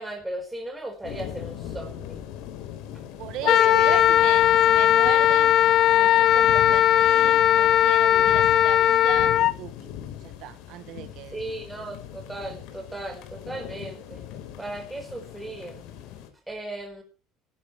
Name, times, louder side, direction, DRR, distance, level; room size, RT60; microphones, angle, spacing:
voice 1, 0.0-2.3 3.4-4.0 11.3-14.2 14.6-15.8 16.5-17.0, right 2 dB, 10° right, 4.4 m, -35 dB
sound 1, 1.0-16.3, left 10 dB, 75° left, 3.9 m, -39 dB
voice 2, 3.2-5.6 5.9-9.9 10.2-11.5, right 13 dB, 65° right, 1.4 m, -38 dB
Wind instrument woodwind instrument, 3.4-9.5, left 11 dB, 50° left, 0.6 m, -18 dB
21.5 x 12.0 x 3.2 m
cardioid pair, 135°, 0 cm